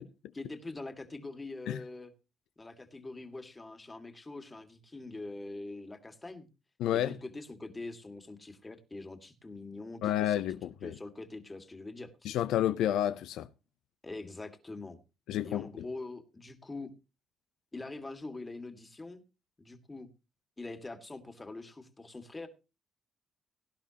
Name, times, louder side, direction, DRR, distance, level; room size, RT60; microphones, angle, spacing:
voice 1, 0.3-2.1 2.6-6.5 6.9-10.4 10.8-12.1 14.0-15.0 15.4-16.9 17.7-19.2 19.6-20.1 20.6-22.5, left 2 dB, 20° left, 2.0 m, -43 dB
voice 2, 6.8-7.2 10.0-10.9 12.2-13.5 15.3-15.9, left 12 dB, 85° left, 0.6 m, -30 dB
18.0 x 11.0 x 2.9 m
cardioid pair, 90°, 0 cm